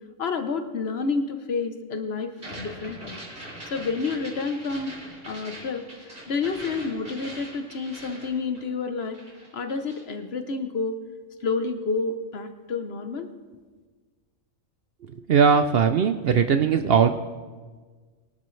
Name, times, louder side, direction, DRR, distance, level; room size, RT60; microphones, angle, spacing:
voice 1, 0.2-2.3 2.6-3.2 3.7-4.9 5.3-5.8 6.3-9.2 9.5-11.0 11.4-13.3, left 4 dB, 55° left, 8 dB, 1.1 m, -29 dB
sound 1, 2.3-8.9 9.1-10.1, right 1 dB, 45° right, 3.8 m, -42 dB
voice 2, 15.3-17.1, right 6 dB, 60° right, 8 dB, 0.7 m, -19 dB
22.5 x 11.5 x 3.2 m, 1.4 s
omnidirectional pair, 1.4 m